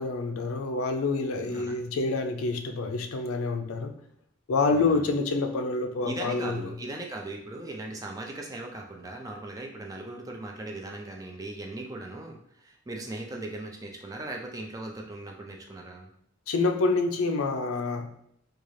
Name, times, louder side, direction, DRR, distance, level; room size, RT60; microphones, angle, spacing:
voice 1, 0.0-4.0 4.5-6.7 16.5-18.1, left 3 dB, 90° left, 6 dB, 0.4 m, -27 dB
voice 2, 4.7-5.1 6.0-16.1, right 2 dB, 15° right, 1 dB, 0.4 m, -38 dB
3.8 x 2.3 x 3.1 m, 0.70 s
head